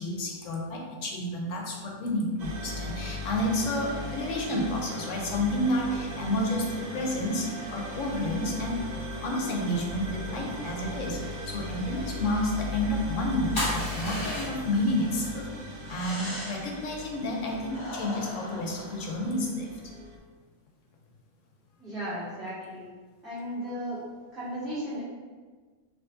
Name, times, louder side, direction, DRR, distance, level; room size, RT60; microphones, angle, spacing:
voice 1, 0.0-8.8 9.2-15.5 15.9-19.7, left 1 dB, 65° left, 0 dB, 1.1 m, -30 dB
sound 1, 2.4-20.2, left 1 dB, 90° right, 1.1 m, -38 dB
sound 2, 13.5-14.8 15.8-16.8 17.7-19.3, left 1 dB, 20° left, 1.2 m, -35 dB
voice 2, 21.8-22.8 23.2-24.0 24.3-25.0, equal, ahead, -12 dB, 1.2 m, -35 dB
6.2 x 2.8 x 2.6 m, 1.4 s
omnidirectional pair, 1.5 m